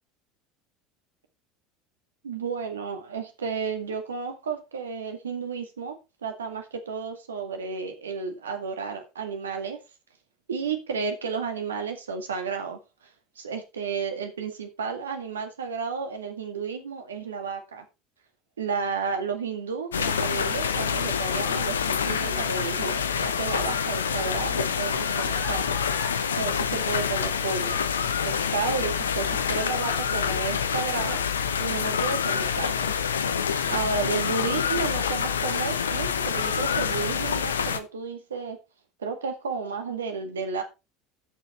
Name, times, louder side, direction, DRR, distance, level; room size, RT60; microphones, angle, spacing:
voice 1, 2.2-6.0 6.2-9.8 10.5-12.8 13.4-17.8 18.6-21.8 22.1-25.8 26.4-27.8 28.2-31.2 31.6-38.6 39.0-40.6, right 5 dB, 75° right, 2.0 m, -32 dB
sound 1, 19.9-37.8, left 7 dB, 75° left, 0.8 m, -27 dB
Crying sobbing, 24.8-26.2 26.9-27.8 29.2-30.0 30.8-31.2 32.3-32.9, right 3 dB, 20° right, 3.2 m, -44 dB
13.0 x 6.6 x 4.3 m
figure-of-eight pair, 70°, 0 cm